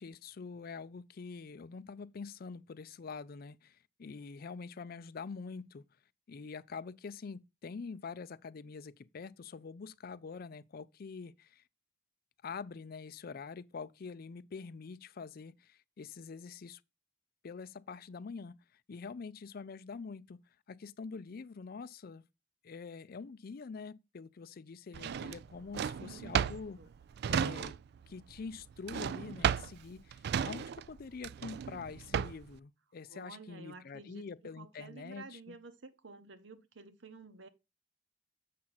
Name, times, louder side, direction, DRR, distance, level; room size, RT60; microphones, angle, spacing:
voice 1, 0.0-5.8 6.3-11.6 12.4-16.8 17.4-20.4 20.7-22.2 22.6-26.8 27.3-27.7 28.1-35.6, left 5 dB, 50° left, 0.4 m, -45 dB
Drawer open or close, 24.9-28.1 28.3-32.6, right 8 dB, 60° right, 0.3 m, -34 dB
voice 2, 25.9-26.9 33.0-34.3 34.6-37.5, right 3 dB, 75° right, 1.0 m, -52 dB
7.5 x 5.9 x 3.9 m
head